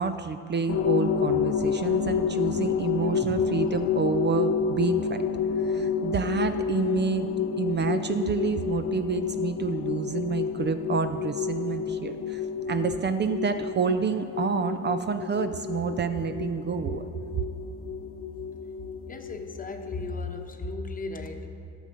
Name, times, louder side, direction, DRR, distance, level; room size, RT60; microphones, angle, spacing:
voice 1, 0.0-5.2 5.6-7.3 7.6-17.1, right 5 dB, 35° right, 9 dB, 0.4 m, -28 dB
sound 1, 0.7-20.4, left 6 dB, 50° left, 0.5 m, -29 dB
voice 2, 19.1-21.5, left 3 dB, 30° left, 5 dB, 0.9 m, -35 dB
12.5 x 6.6 x 5.2 m, 2.5 s
cardioid pair, 90°, 30 cm